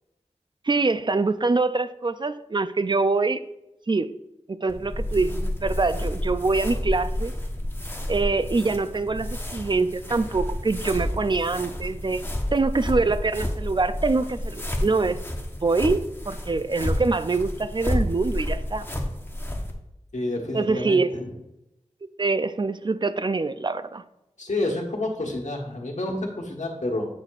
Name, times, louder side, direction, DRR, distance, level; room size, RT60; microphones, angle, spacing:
voice 1, 0.7-3.4 3.9-4.1 4.5-7.3 8.1-12.2 12.5-15.2 15.6-18.9 20.5-21.1 22.2-24.0, right 3 dB, 40° right, 12 dB, 0.3 m, -24 dB
sound 1, 4.7-19.7, left 1 dB, 20° left, 1.0 m, -30 dB
voice 2, 20.1-21.3 24.4-27.1, left 2 dB, 85° left, -1 dB, 1.3 m, -29 dB
8.5 x 6.5 x 2.4 m, 0.90 s
wide cardioid pair, 60°, 12 cm